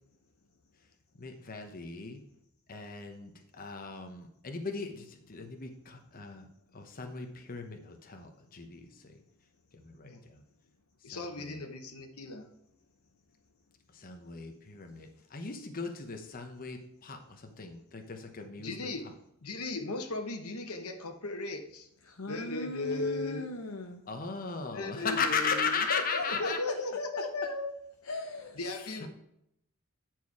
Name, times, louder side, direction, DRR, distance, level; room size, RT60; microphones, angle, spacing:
voice 1, 1.2-2.2 2.7-6.5 6.7-9.1 9.7-10.4 11.1-11.6 13.9-18.9 24.1-26.6 29.0-29.1, left 5 dB, 40° left, 4 dB, 1.0 m, -37 dB
voice 2, 11.0-12.5 18.6-19.1 19.4-21.9 22.3-23.4 24.7-25.8 26.2-27.7 28.6-29.1, left 2 dB, 85° left, 5 dB, 1.2 m, -36 dB
voice 3, 22.0-24.0 25.9-26.7 28.0-28.6, left 3 dB, 70° left, 3 dB, 0.8 m, -38 dB
9.2 x 4.6 x 4.7 m, 0.77 s
head